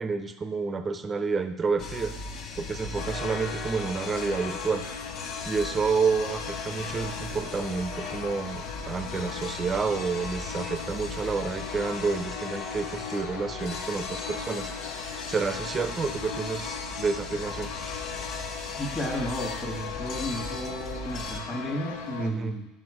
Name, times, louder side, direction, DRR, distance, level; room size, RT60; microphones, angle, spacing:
voice 1, 0.0-2.1 2.6-4.9 5.5-14.7 15.3-17.7 22.2-22.6, right 4 dB, 25° right, 10 dB, 0.5 m, -29 dB
sound 1, 1.8-21.4, left 3 dB, 50° left, 0.8 m, -38 dB
sound 2, 2.9-22.3, left 6 dB, 85° left, 0.6 m, -39 dB
voice 2, 18.8-22.7, equal, 20° left, -4 dB, 1.4 m, -33 dB
6.0 x 4.6 x 4.9 m, 1.0 s
supercardioid pair, 100°, 0 cm